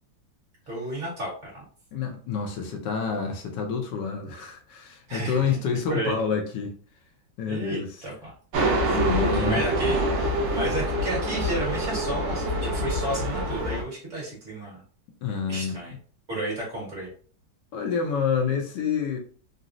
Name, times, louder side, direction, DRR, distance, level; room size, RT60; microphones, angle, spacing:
voice 1, 0.7-1.6 5.1-5.6 5.9-6.1 7.5-8.3 8.8-14.8 15.5-15.9 16.3-17.1, right 1 dB, 45° right, 1.5 m, -32 dB
voice 2, 1.9-6.8 7.4-8.1 8.6-9.6 15.2-15.7 17.7-19.2, left 6 dB, 75° left, 1.2 m, -28 dB
sound 1, 8.5-13.8, right 1 dB, 85° right, 0.6 m, -26 dB
3.9 x 2.0 x 2.5 m
omnidirectional pair, 2.0 m